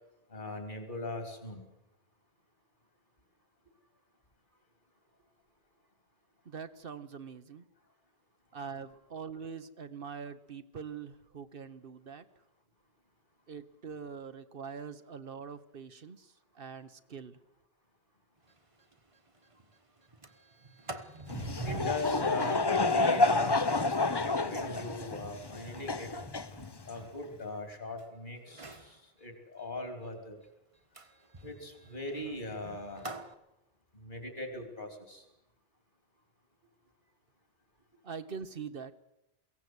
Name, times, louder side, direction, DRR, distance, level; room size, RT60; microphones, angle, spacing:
voice 1, 0.3-1.7 21.6-26.1 26.8-30.4 31.4-33.1 33.9-35.3, left 2 dB, 50° left, 5 dB, 3.8 m, -40 dB
voice 2, 6.4-7.7 8.5-12.2 13.5-17.4 38.0-38.9, right 6 dB, 65° right, 11 dB, 1.2 m, -43 dB
Sliding door, 18.5-18.6 18.9-19.0 19.3-19.6 20.0-28.0 28.5-28.9 30.9-33.3, right 2 dB, 35° right, 1.4 m, -46 dB
Laughter / Crowd, 21.3-27.0, left 3 dB, 25° left, 0.8 m, -29 dB
23.0 x 17.0 x 8.1 m, 0.89 s
omnidirectional pair, 1.0 m